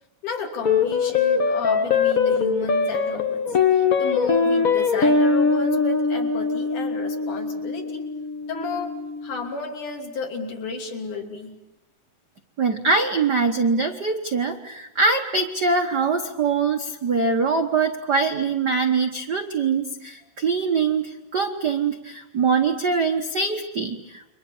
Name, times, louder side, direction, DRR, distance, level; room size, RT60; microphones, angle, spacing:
voice 1, 0.2-3.4 3.7-8.0 8.5-9.0 9.2-11.6, left 4 dB, 60° left, 3 dB, 4.5 m, -32 dB
sound 1, 0.6-9.3, left 5 dB, 85° left, 0.7 m, -22 dB
voice 2, 12.6-24.3, right 4 dB, 90° right, 4 dB, 0.9 m, -23 dB
29.5 x 24.5 x 7.3 m, 0.89 s
omnidirectional pair, 4.1 m